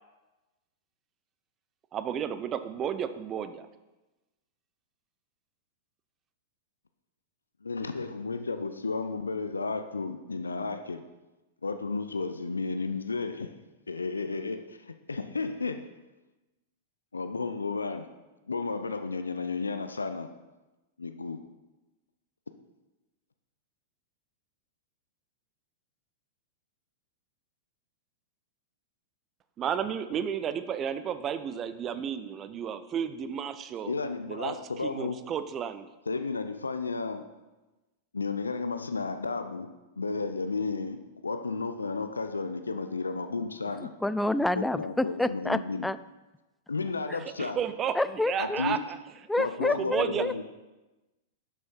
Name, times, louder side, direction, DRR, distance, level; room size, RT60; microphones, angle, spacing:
voice 1, 1.9-3.7 29.6-33.9 34.3-35.9 47.2-49.0 49.7-50.2, right 8 dB, 30° right, 12 dB, 0.6 m, -32 dB
voice 2, 7.6-11.0 11.6-13.5 13.9-15.9 17.1-18.1 18.5-20.3 21.0-21.4 33.9-35.2 36.1-37.3 38.1-43.9 44.6-45.9 46.7-47.6 48.4-48.8 49.4-50.4, left 4 dB, 85° left, 9 dB, 0.5 m, -33 dB
voice 3, 44.0-46.0 47.1-47.2 47.9-48.6 49.3-50.3, left 1 dB, 5° left, 14 dB, 0.3 m, -28 dB
11.5 x 6.4 x 4.5 m, 1.1 s
figure-of-eight pair, 100°, 0 cm